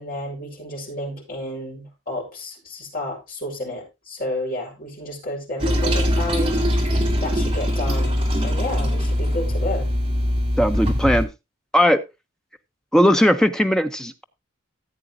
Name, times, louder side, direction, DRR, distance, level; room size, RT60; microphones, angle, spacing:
voice 1, 0.0-6.6 7.2-9.9, left 1 dB, 45° left, -2 dB, 5.1 m, -31 dB
Toilet flush, 5.6-11.2, equal, 25° right, 2.3 m, -22 dB
voice 2, 10.6-11.3 11.7-12.0 12.9-14.2, equal, 5° left, 8 dB, 0.6 m, -18 dB
15.0 x 8.2 x 2.6 m, 0.23 s
head